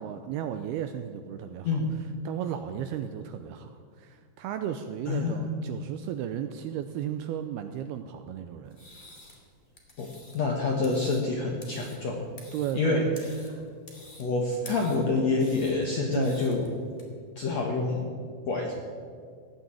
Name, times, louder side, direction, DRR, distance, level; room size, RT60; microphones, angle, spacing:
voice 1, 0.0-1.8 2.3-8.8 12.5-13.1 16.1-16.4, right 9 dB, 85° right, 8 dB, 2.3 m, -34 dB
voice 2, 5.1-5.7 10.0-10.1 10.3-12.2 12.7-13.0 14.2-16.8 17.4-18.2 18.5-18.7, left 3 dB, 65° left, 0 dB, 1.7 m, -27 dB
sound 1, 8.6-17.0, left 1 dB, 20° left, 1.4 m, -51 dB
16.5 x 9.4 x 8.7 m, 2.1 s
omnidirectional pair, 5.1 m